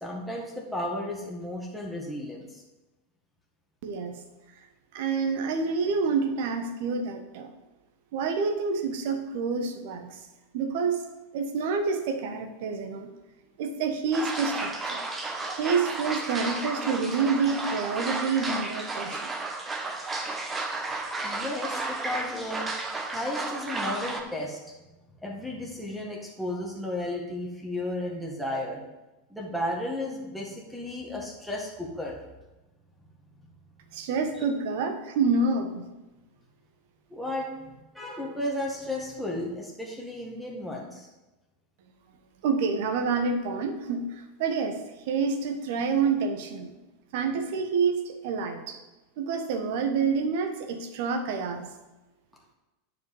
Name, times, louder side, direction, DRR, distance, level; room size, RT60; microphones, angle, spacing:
voice 1, 0.0-2.6 20.6-20.7 21.2-22.7 23.1-24.6 25.2-28.8 29.3-32.2 34.4-34.5 37.1-41.1, left 1 dB, ahead, -1 dB, 1.8 m, -34 dB
voice 2, 3.8-4.2 4.9-7.5 8.1-10.2 10.5-11.0 11.3-13.1 13.6-15.0 15.6-19.3 33.9-35.9 42.4-44.8 45.1-46.7 47.1-48.8 49.2-51.7, right 5 dB, 60° right, 7 dB, 1.2 m, -28 dB
sound 1, 14.1-24.2, right 3 dB, 15° right, 1.4 m, -33 dB
10.5 x 5.2 x 5.4 m, 1.1 s
figure-of-eight pair, 85°, 0 cm